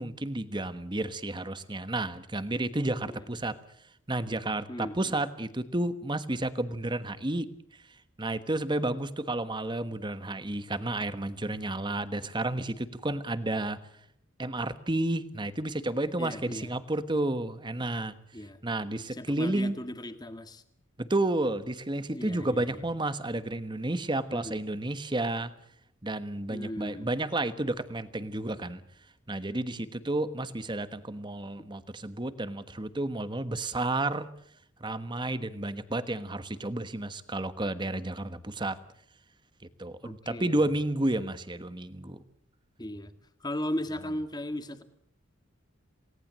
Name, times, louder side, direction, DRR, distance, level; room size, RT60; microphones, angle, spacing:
voice 1, 0.0-3.6 4.1-7.5 8.2-13.8 14.4-18.2 18.6-19.8 21.0-25.5 26.0-28.8 29.3-34.3 34.8-38.8 39.8-42.2, right 2 dB, 25° right, 12 dB, 1.3 m, -31 dB
voice 2, 4.7-5.2 16.2-16.7 18.3-18.6 19.1-20.6 22.1-22.8 24.3-24.6 26.5-27.1 40.0-40.7 42.8-43.1 43.4-44.8, left 1 dB, 20° left, 9 dB, 1.8 m, -37 dB
28.0 x 18.5 x 7.6 m, 0.71 s
head